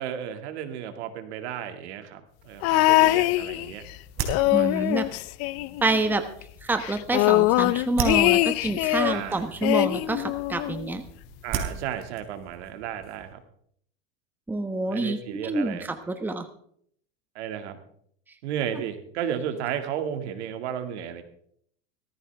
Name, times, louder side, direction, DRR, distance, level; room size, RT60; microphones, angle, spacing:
voice 1, 0.0-3.8 4.4-4.9 9.0-9.5 11.4-13.4 14.9-15.9 17.3-17.8 18.4-21.2, right 9 dB, 75° right, 7 dB, 2.2 m, -33 dB
sound 1, 2.6-3.9 4.2-6.1 6.4-6.5 6.8-9.2 9.6-10.9 11.7-11.8, left 19 dB, 45° left, 0.5 m, -23 dB
sound 2, 3.0-13.3, right 7 dB, 40° right, 3.4 m, -38 dB
voice 2, 4.5-5.1 5.8-6.2 6.6-11.0 14.5-16.5, right 2 dB, 5° right, 8 dB, 1.0 m, -27 dB
17.5 x 14.5 x 3.4 m, 0.65 s
supercardioid pair, 120°, 34 cm